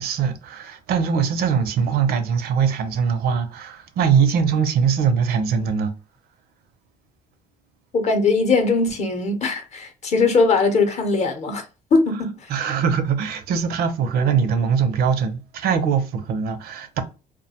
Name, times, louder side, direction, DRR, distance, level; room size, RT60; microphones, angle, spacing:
voice 1, 0.0-5.9 12.5-17.0, right 6 dB, 65° right, 0.5 m, -22 dB
voice 2, 7.9-11.6 11.9-12.3, left 3 dB, 40° left, 0.7 m, -20 dB
2.4 x 2.2 x 2.7 m
cardioid pair, 110°, 17 cm